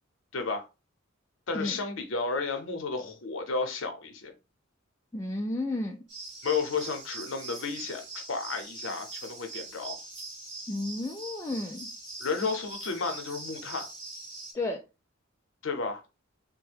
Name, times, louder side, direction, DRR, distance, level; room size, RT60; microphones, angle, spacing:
voice 1, 0.3-0.7 1.5-4.3 6.4-10.0 12.2-13.9 15.6-16.0, left 4 dB, 65° left, 0.7 m, -32 dB
voice 2, 5.1-6.0 10.7-11.9 14.5-14.8, left 2 dB, 15° left, 0.3 m, -32 dB
sound 1, 6.1-14.5, right 3 dB, 60° right, 1.6 m, -42 dB
3.4 x 2.2 x 3.3 m
head